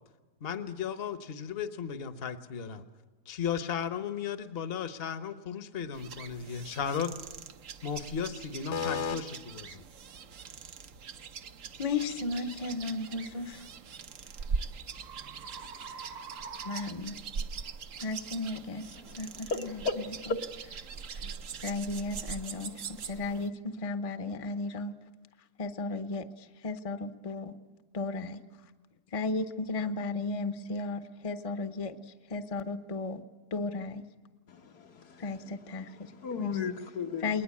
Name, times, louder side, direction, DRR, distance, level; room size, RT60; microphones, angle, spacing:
voice 1, 0.4-2.8 3.3-7.1 7.8-9.8, left 7 dB, 40° left, 1.1 m, -35 dB
sound 1, 5.9-23.5, right 5 dB, 60° right, 1.2 m, -42 dB
voice 2, 8.7-9.2 11.8-13.7 16.6-17.2 18.0-18.9 19.2-20.4 21.2-21.3 21.6-24.9 25.6-27.6 27.9-28.4 29.1-32.0 32.3-33.2 33.5-34.0 35.2-36.1 36.4-36.6 37.2-37.4, left 3 dB, 25° left, 0.8 m, -34 dB
sound 2, 9.0-9.1 9.7-9.9 10.5-10.7 13.3-17.8, right 5 dB, 75° right, 1.5 m, -47 dB
voice 3, 34.5-35.3 35.7-37.3, left 4 dB, 80° left, 1.9 m, -35 dB
20.5 x 20.0 x 8.5 m
omnidirectional pair, 1.7 m